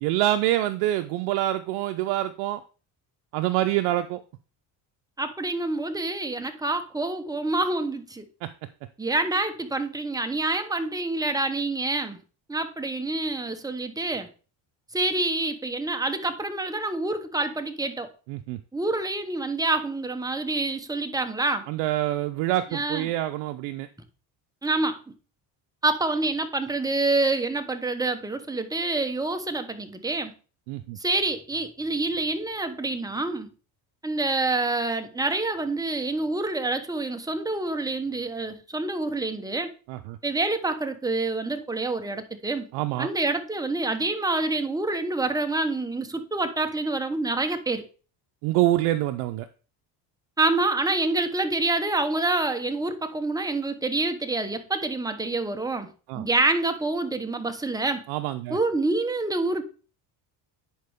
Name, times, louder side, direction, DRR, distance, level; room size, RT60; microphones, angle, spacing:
voice 1, 0.0-2.6 3.3-4.2 8.4-8.5 18.3-18.6 21.7-23.9 30.7-31.0 39.9-40.2 42.7-43.1 48.4-49.5 56.1-56.3 58.1-58.6, right 14 dB, 85° right, 0.6 m, -26 dB
voice 2, 5.2-8.3 9.0-12.2 12.5-14.3 14.9-18.1 18.7-21.7 22.7-23.1 24.6-25.0 25.8-30.3 31.0-33.5 34.0-39.7 40.2-42.7 43.0-47.8 50.4-58.1 58.5-59.6, right 2 dB, 10° right, 1.0 m, -27 dB
10.5 x 4.7 x 3.5 m
supercardioid pair, 80°, 48 cm